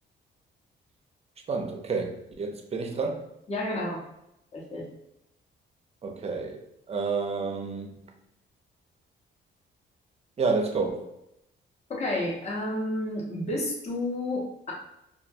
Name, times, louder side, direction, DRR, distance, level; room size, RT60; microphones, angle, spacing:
voice 1, 1.5-3.3 6.0-6.6 6.9-8.0 10.4-11.1, right 4 dB, 30° right, 4 dB, 0.5 m, -29 dB
voice 2, 3.5-4.0 4.5-4.9 11.9-14.7, left 1 dB, 35° left, -2 dB, 0.7 m, -31 dB
2.4 x 2.1 x 2.6 m, 0.83 s
cardioid pair, 90°, 20 cm